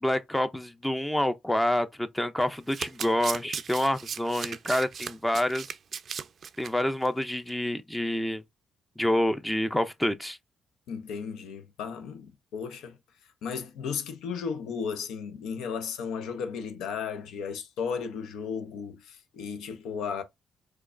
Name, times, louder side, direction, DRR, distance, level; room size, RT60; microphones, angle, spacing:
voice 1, 0.0-5.6 6.6-8.4 9.0-10.4, left 1 dB, 5° left, 0.5 m, -27 dB
Domestic sounds home sounds, 2.4-6.7 7.0-7.2 7.5-7.6, right 7 dB, 55° right, 0.4 m, -37 dB
voice 2, 10.9-13.0 13.4-20.2, left 6 dB, 85° left, 0.7 m, -35 dB
4.6 x 2.3 x 2.5 m
cardioid pair, 90°, 0 cm